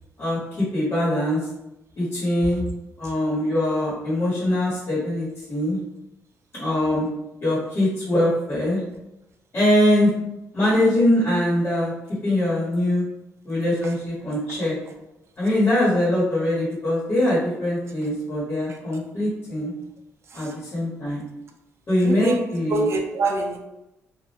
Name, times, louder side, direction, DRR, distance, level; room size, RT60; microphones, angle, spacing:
voice 1, 0.2-1.4 2.0-2.6 3.0-5.8 6.5-7.1 7.4-8.8 9.5-10.1 10.5-11.9 12.2-13.0 13.4-14.7 15.4-19.7 20.3-21.2 21.9-22.9, left 1 dB, 45° left, -8 dB, 1.2 m, -22 dB
voice 2, 22.0-22.4 22.7-23.6, right 3 dB, 55° right, 2 dB, 0.4 m, -26 dB
2.4 x 2.0 x 2.8 m, 0.91 s
cardioid pair, 90°, 6 cm